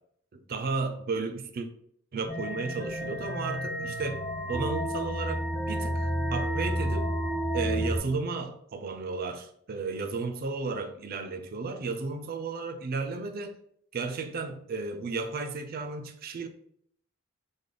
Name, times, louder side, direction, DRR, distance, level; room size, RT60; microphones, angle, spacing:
voice 1, 0.3-1.7 2.1-4.2 4.5-7.1 7.5-13.6 13.9-16.5, right 4 dB, 50° right, 0.4 m, -33 dB
sound 1, 2.3-8.0, equal, 30° left, 0.9 m, -31 dB
3.2 x 2.1 x 3.7 m
head